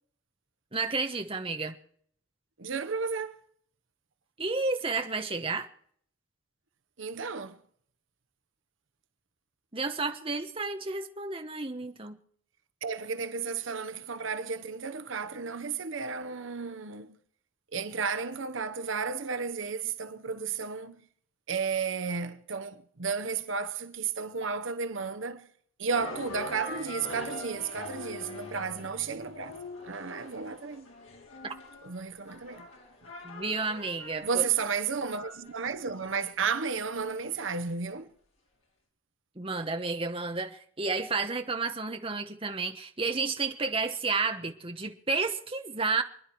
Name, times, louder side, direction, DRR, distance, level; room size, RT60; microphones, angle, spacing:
voice 1, 0.7-1.8 4.4-5.7 9.7-12.2 31.4-31.5 33.2-34.4 39.4-46.0, right 3 dB, 25° right, 1.1 m, -31 dB
voice 2, 2.6-3.4 7.0-7.6 12.8-17.2 17.7-21.0 21.5-25.5 25.8-29.6 29.8-30.9 31.8-32.7 34.2-38.1, right 5 dB, 65° right, 0.8 m, -33 dB
sound 1, 25.9-37.1, left 2 dB, 80° left, 4.3 m, -44 dB
28.0 x 10.5 x 4.6 m
head